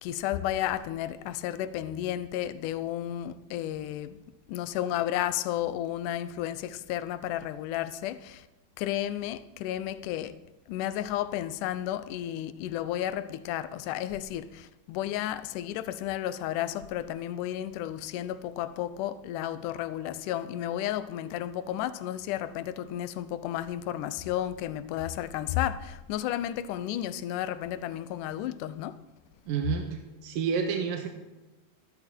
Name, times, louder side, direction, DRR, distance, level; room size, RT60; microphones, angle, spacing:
voice 1, 0.0-4.2 4.5-8.5 8.8-10.3 10.7-29.0, left 12 dB, 75° left, 2.1 m, -32 dB
voice 2, 29.5-31.1, right 6 dB, 75° right, 2.9 m, -30 dB
14.0 x 12.5 x 4.4 m
omnidirectional pair, 4.1 m